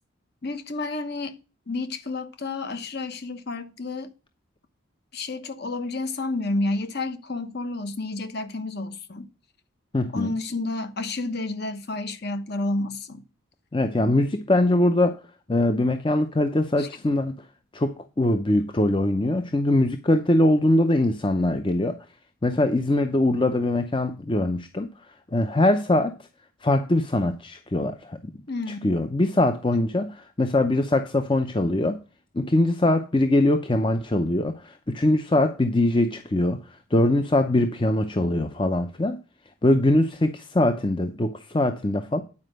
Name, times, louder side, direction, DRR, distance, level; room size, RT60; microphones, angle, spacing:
voice 1, 0.4-1.4 1.7-4.1 5.1-9.3 10.1-13.2 16.8-16.9 28.5-28.9 29.7-29.8, left 2 dB, 50° left, 1.1 m, -30 dB
voice 2, 9.9-10.3 13.7-15.2 15.5-17.3 17.7-22.0 22.4-24.9 25.3-26.1 26.6-28.3 28.8-30.1 30.4-32.0 32.3-39.2 39.6-42.2, left 1 dB, 25° left, 0.6 m, -22 dB
9.6 x 5.0 x 6.4 m
head